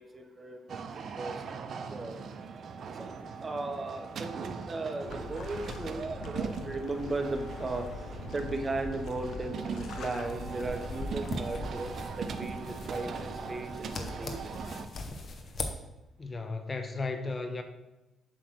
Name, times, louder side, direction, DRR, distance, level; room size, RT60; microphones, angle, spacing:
voice 1, 0.0-2.2 2.9-14.4, right 2 dB, 30° right, 5 dB, 1.0 m, -37 dB
sound 1, 0.7-14.9, right 5 dB, 55° right, 0.6 m, -40 dB
sound 2, 5.1-11.7, left 4 dB, 70° left, 0.8 m, -43 dB
sound 3, 10.2-15.7, left 2 dB, 45° left, 1.0 m, -40 dB
voice 2, 16.2-17.6, left 3 dB, 30° left, 7 dB, 0.7 m, -35 dB
7.6 x 3.2 x 6.2 m, 0.99 s
cardioid pair, 90°, 0 cm